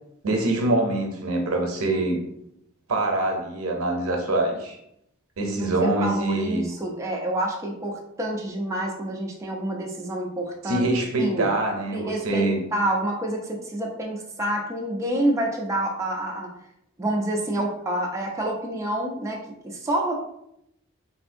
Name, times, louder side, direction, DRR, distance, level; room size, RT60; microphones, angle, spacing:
voice 1, 0.2-2.2 2.9-4.8 5.4-6.7 10.6-12.6, right 2 dB, 85° right, 2 dB, 0.6 m, -24 dB
voice 2, 5.6-10.8 11.2-11.5 11.9-16.5 17.0-19.4 19.6-20.1, right 1 dB, 15° right, -1 dB, 0.4 m, -28 dB
3.4 x 2.5 x 2.6 m, 0.77 s
head